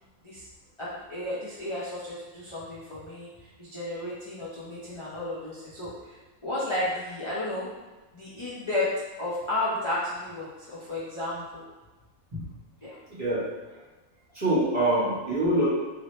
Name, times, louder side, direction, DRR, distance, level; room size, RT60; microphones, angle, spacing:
voice 1, 0.8-3.3 3.6-6.2 6.4-7.7 8.1-8.9 9.2-11.6 12.8-13.0, left 2 dB, 35° left, -10 dB, 0.4 m, -32 dB
voice 2, 13.1-13.4 14.3-15.7, right 1 dB, 30° right, -9 dB, 1.1 m, -25 dB
2.8 x 2.7 x 3.1 m, 1.2 s
omnidirectional pair, 1.4 m